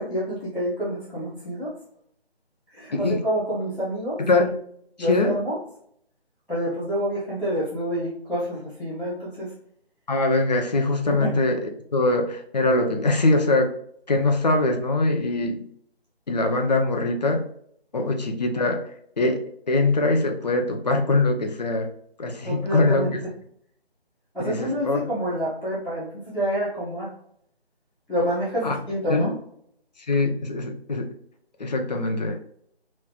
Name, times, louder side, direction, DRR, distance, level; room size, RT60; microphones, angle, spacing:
voice 1, 0.0-1.7 2.7-4.2 5.0-5.6 6.5-9.5 11.1-11.4 22.4-23.2 24.3-27.1 28.1-29.3, equal, ahead, -24 dB, 0.8 m, -28 dB
voice 2, 4.2-4.5 5.1-5.3 10.1-11.6 11.9-13.7 14.1-15.6 16.3-17.5 17.9-18.8 19.2-21.9 22.2-23.1 24.4-25.0 28.6-28.7 29.1-29.3 30.1-31.1 31.6-32.4, left 2 dB, 40° left, 3 dB, 0.7 m, -22 dB
4.8 x 3.2 x 2.4 m, 0.67 s
figure-of-eight pair, 160°, 32 cm